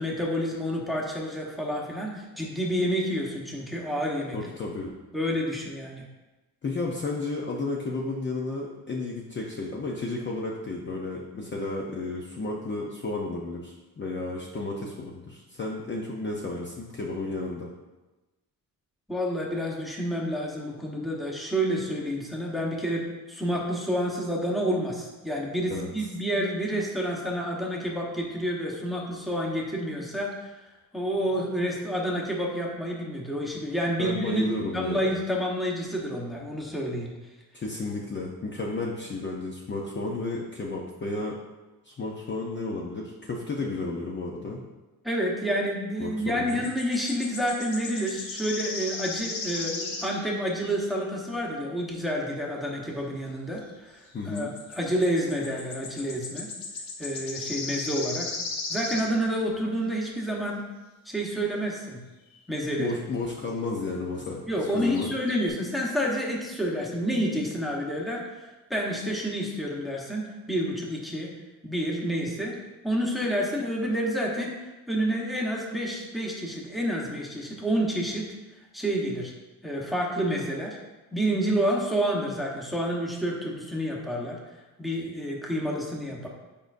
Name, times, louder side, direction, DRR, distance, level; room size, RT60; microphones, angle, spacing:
voice 1, 0.0-4.4 5.1-6.0 19.1-30.5 30.9-37.1 45.0-56.5 57.0-58.3 58.7-60.6 61.0-62.0 62.5-63.0 64.5-71.3 71.6-72.5 72.8-74.5 74.9-78.3 78.7-79.3 79.6-80.8 81.1-84.4 84.8-86.3, equal, ahead, -3 dB, 1.0 m, -29 dB
voice 2, 4.3-4.9 6.6-17.7 25.7-25.9 34.0-35.1 37.5-41.4 41.8-44.6 46.0-46.6 54.1-54.5 62.8-64.4 64.7-65.1, left 3 dB, 30° left, -2 dB, 0.6 m, -32 dB
sound 1, 46.5-51.0 54.3-59.1 62.3-62.4 64.2-64.3 64.6-65.5, left 3 dB, 70° left, 1.1 m, -36 dB
8.6 x 5.2 x 2.6 m, 1.1 s
wide cardioid pair, 150°, 36 cm